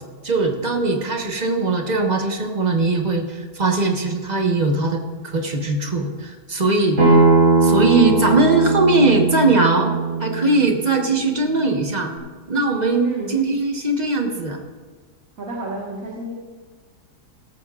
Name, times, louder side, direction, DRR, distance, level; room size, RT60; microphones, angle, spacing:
voice 1, 0.2-7.2 7.6-9.9 10.2-12.1 12.5-14.6, right 3 dB, 30° right, 3 dB, 1.1 m, -20 dB
Acoustic guitar, 7.0-12.2, right 3 dB, 70° right, 4.0 m, -19 dB
voice 2, 15.4-16.3, right 2 dB, 55° right, -3 dB, 2.0 m, -30 dB
16.5 x 14.0 x 2.4 m, 1.4 s
omnidirectional pair, 1.8 m